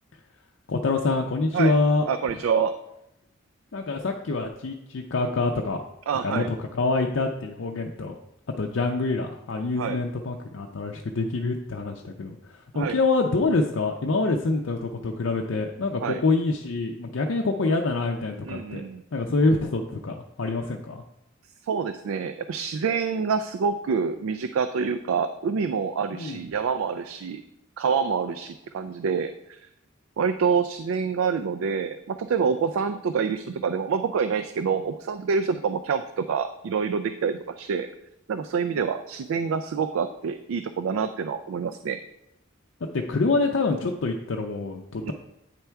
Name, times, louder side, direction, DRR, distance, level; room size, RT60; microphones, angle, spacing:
voice 1, 0.7-2.4 3.7-5.8 6.2-8.1 8.6-18.8 19.1-21.0 26.1-26.4 43.1-45.1, left 3 dB, 70° left, 2 dB, 0.5 m, -26 dB
voice 2, 2.1-2.7 6.1-6.5 9.8-10.0 12.7-13.0 16.0-16.2 18.4-19.0 21.7-27.4 27.8-29.6 30.2-37.9 38.3-42.0 45.0-45.1, right 6 dB, 90° right, 9 dB, 0.4 m, -27 dB
9.0 x 4.4 x 3.5 m, 0.83 s
head